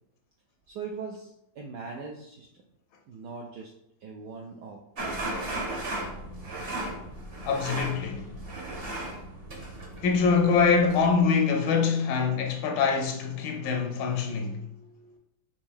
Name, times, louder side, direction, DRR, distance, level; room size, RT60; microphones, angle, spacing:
voice 1, 0.7-2.6 3.1-3.7 4.0-4.8 5.0-5.3 14.5-15.2, right 5 dB, 80° right, 0.9 m, -41 dB
sound 1, 5.0-11.3, right 1 dB, 45° right, 0.8 m, -36 dB
voice 2, 7.4-8.3 10.0-14.6, left 5 dB, 75° left, 1.3 m, -24 dB
5.5 x 2.6 x 3.4 m
omnidirectional pair, 2.3 m